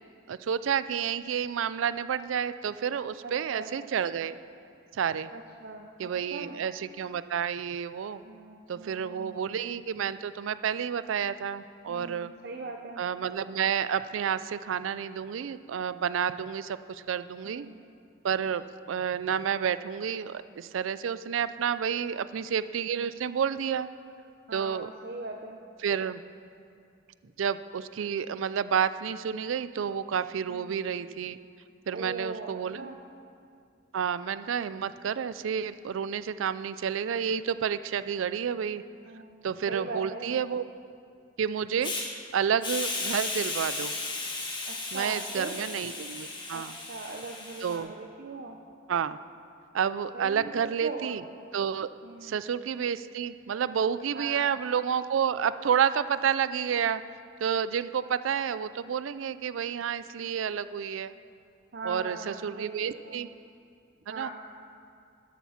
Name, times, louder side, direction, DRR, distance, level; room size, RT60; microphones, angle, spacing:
voice 1, 0.3-4.4 4.9-5.3 6.0-8.2 8.7-12.3 13.0-17.7 18.2-23.9 24.5-24.9 25.8-26.2 27.4-31.4 31.9-32.9 33.9-38.8 39.4-40.6 41.4-41.9 42.3-43.9 44.9-46.8 47.6-47.9 48.9-49.2 49.7-51.2 51.5-51.9 52.2-57.0 57.4-61.1 61.8-63.3 64.1-64.3, right 7 dB, 85° right, 14 dB, 0.4 m, -30 dB
voice 2, 3.2-3.7 5.3-6.6 8.2-9.5 11.9-13.0 17.4-17.8 22.1-22.3 24.5-25.6 27.2-27.3 30.5-30.8 31.9-33.0 39.0-40.3 44.7-45.5 46.5-48.6 50.1-50.5 50.8-51.2 52.0-52.4 54.1-54.6 61.7-63.2 64.1-64.3, right 3 dB, 55° right, 2 dB, 0.7 m, -41 dB
Hiss, 41.8-42.0 42.6-47.8, left 3 dB, 25° left, 1.6 m, -35 dB
13.0 x 11.5 x 5.7 m, 2.4 s
head